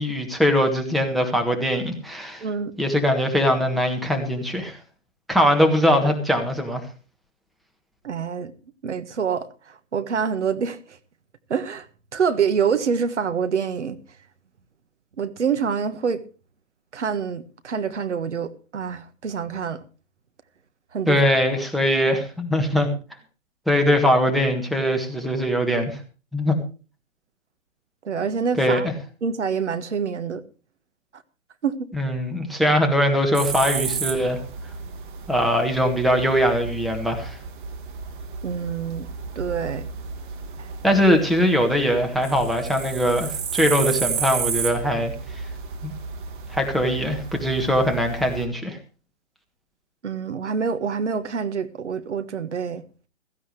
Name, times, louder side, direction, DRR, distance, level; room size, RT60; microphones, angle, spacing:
voice 1, 0.0-2.4 2.8-4.8 5.3-6.8 21.1-22.9 23.7-26.0 26.3-26.6 28.6-28.9 31.9-34.4 35.3-37.4 40.8-45.1 45.8-45.9 46.5-48.8, equal, ahead, 1.5 m, -21 dB
voice 2, 2.4-2.7 8.0-8.5 8.8-10.8 11.5-11.9 12.1-14.0 15.2-16.2 16.9-19.8 20.9-21.2 28.0-28.9 29.2-30.4 31.6-31.9 38.4-39.1 39.3-39.9 40.6-40.7 50.0-52.8, right 6 dB, 65° right, 1.5 m, -26 dB
sound 1, 33.3-48.5, right 6 dB, 40° right, 2.4 m, -32 dB
16.0 x 15.0 x 3.2 m
figure-of-eight pair, 130°, 39 cm